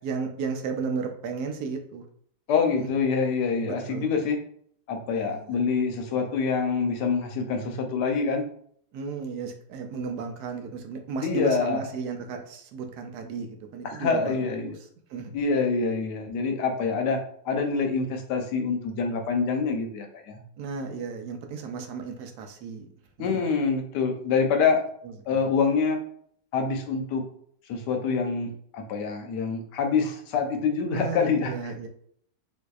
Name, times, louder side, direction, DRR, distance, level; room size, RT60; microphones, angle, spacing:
voice 1, 0.0-2.0 2.8-2.9 3.6-4.1 5.1-5.6 8.9-14.8 15.1-15.4 20.6-22.9 23.2-23.4 25.0-25.5 30.9-31.9, right 5 dB, 75° right, 4 dB, 1.1 m, -34 dB
voice 2, 2.5-4.4 4.9-8.4 11.2-11.8 13.8-14.7 15.3-20.4 23.2-24.8 25.3-26.0 26.5-27.2 27.7-31.5, left 5 dB, 80° left, 4 dB, 1.2 m, -26 dB
4.0 x 2.7 x 2.3 m, 0.63 s
omnidirectional pair, 1.8 m